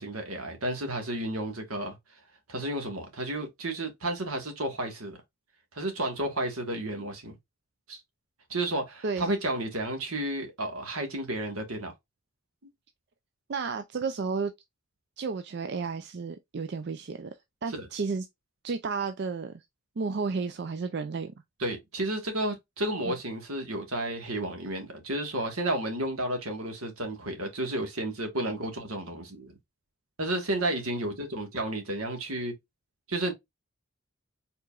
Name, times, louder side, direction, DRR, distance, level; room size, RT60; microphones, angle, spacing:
voice 1, 0.0-2.0 2.5-5.2 5.7-7.3 7.9-8.0 8.5-11.9 17.7-17.9 21.6-29.5 30.2-32.5 33.1-33.3, right 1 dB, 80° right, 1.6 m, -32 dB
voice 2, 13.5-14.5 15.2-17.3 17.6-18.3 18.6-19.6 20.0-21.3 23.1-23.2, right 4 dB, 50° right, 0.4 m, -32 dB
4.7 x 3.8 x 2.4 m
head